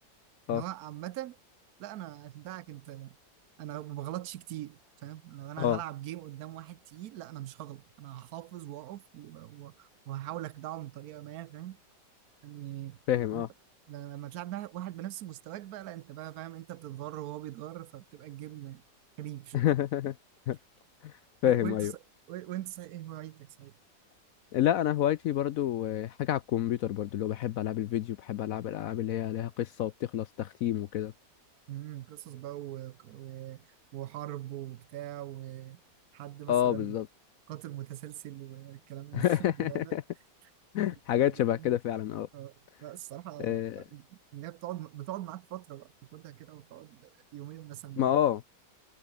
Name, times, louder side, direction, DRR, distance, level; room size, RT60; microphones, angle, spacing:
voice 1, 0.5-1.4 1.8-3.2 3.6-11.8 12.4-13.0 13.3-13.5 13.9-18.8 19.2-19.7 21.4-21.9 22.3-23.7 31.7-35.8 36.1-37.0 37.5-40.0 41.2-41.8 42.3-48.1, right 14 dB, 70° right, 1.0 m, -42 dB
voice 2, 13.1-13.5 19.5-20.1 20.5-20.6 21.0-21.1 21.4-21.9 24.5-31.1 36.5-37.1 39.1-40.0 40.7-42.3 43.4-43.8 48.0-48.4, left 11 dB, 70° left, 0.8 m, -28 dB
omnidirectional pair, 1.9 m